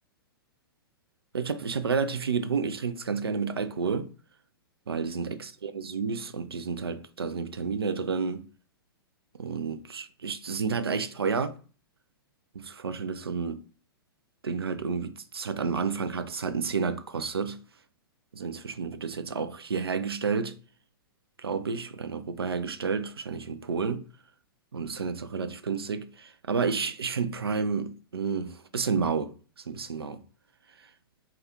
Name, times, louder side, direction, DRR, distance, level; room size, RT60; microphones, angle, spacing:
voice 1, 1.3-4.1 4.9-5.4 5.6-8.5 9.4-11.6 12.5-13.6 14.4-17.6 18.3-20.6 21.4-24.1 24.7-29.3 29.7-30.2, right 5 dB, 85° right, 0.4 m, -30 dB
2.7 x 2.3 x 3.5 m
figure-of-eight pair, 110°, 12 cm